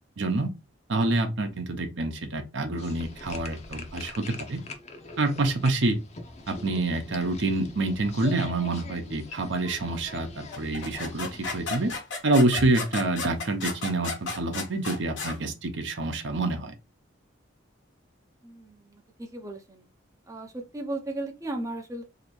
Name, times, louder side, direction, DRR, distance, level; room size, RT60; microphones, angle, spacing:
voice 1, 0.2-0.5 0.9-4.6 5.2-6.0 6.5-11.9 12.2-16.7, right 2 dB, 70° right, 0.8 m, -27 dB
sound 1, 2.8-12.0, left 3 dB, 35° left, 0.6 m, -43 dB
sound 2, 10.5-15.4, left 4 dB, 70° left, 1.0 m, -34 dB
voice 2, 18.4-19.8 20.3-22.0, right 2 dB, 15° right, 0.5 m, -36 dB
2.9 x 2.6 x 4.3 m
head